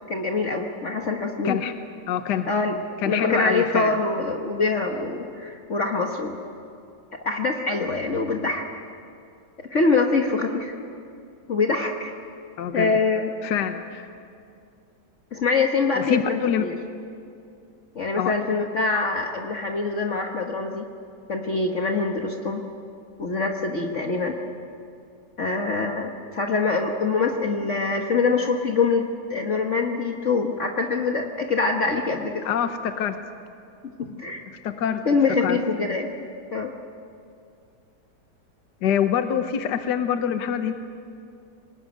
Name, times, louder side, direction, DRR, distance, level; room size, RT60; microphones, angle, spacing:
voice 1, 0.1-1.6 2.5-2.8 3.0-6.4 7.2-8.7 9.6-10.7 11.5-12.1 12.7-13.3 15.3-16.7 17.9-20.9 21.3-22.6 23.2-24.4 25.4-29.0 29.3-32.5 34.0-34.4 35.0-36.1 36.5-36.7, left 4 dB, 45° left, 2 dB, 1.6 m, -24 dB
voice 2, 2.1-2.5 3.0-4.0 12.6-12.9 13.4-14.1 16.0-16.7 18.2-18.3 32.4-33.2 34.6-35.0 35.4-35.6 38.8-40.7, left 9 dB, 70° left, 8 dB, 1.6 m, -25 dB
25.0 x 20.0 x 9.5 m, 2.5 s
omnidirectional pair, 1.9 m